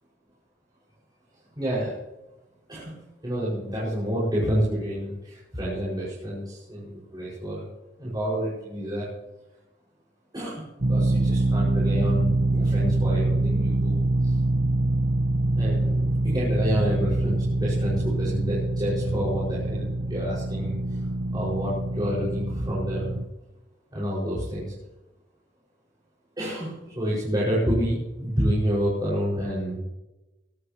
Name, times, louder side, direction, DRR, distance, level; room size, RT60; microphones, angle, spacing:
voice 1, 1.6-2.0 2.7-7.7 8.0-9.1 10.3-14.4 15.5-21.0 21.3-23.2 23.9-24.7 26.4-29.8, equal, 25° right, -8 dB, 5.7 m, -29 dB
sound 1, 10.8-23.2, right 2 dB, 85° right, 1.1 m, -25 dB
22.0 x 13.5 x 3.0 m, 1.0 s
head